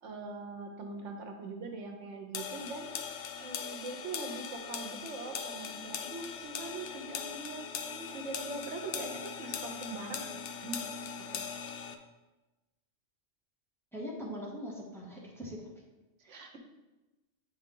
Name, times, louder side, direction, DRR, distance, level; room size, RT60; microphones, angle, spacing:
voice 1, 0.0-2.9 3.4-10.3 10.6-10.8 11.2-11.4 16.3-16.6, right 3 dB, 80° right, 4 dB, 1.1 m, -42 dB
sound 1, 2.3-12.0, left 7 dB, 75° left, 0.9 m, -40 dB
voice 2, 13.9-15.7 16.2-16.3, equal, ahead, -3 dB, 1.1 m, -41 dB
8.5 x 4.0 x 3.7 m, 1.1 s
omnidirectional pair, 1.3 m